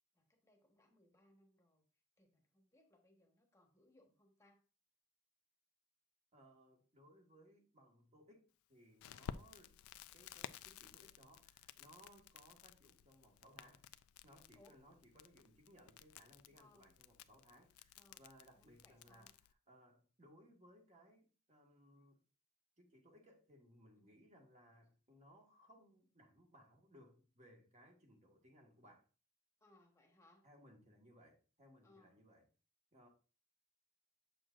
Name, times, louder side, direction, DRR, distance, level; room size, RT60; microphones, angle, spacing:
voice 1, 0.1-1.9 2.2-4.6 12.0-12.3 14.5-14.8 16.5-16.9 18.0-18.2 18.5-19.3 24.0-24.2 29.6-30.4 31.8-32.2, left 1 dB, 15° left, 1.3 m, -69 dB
voice 2, 6.3-9.8 10.1-13.9 14.2-22.2 22.8-29.1 30.4-32.5 32.9-33.1, equal, 35° right, 1.7 m, -65 dB
Crackle, 9.0-19.5, left 8 dB, 85° left, 0.3 m, -55 dB
7.6 x 6.1 x 2.5 m
head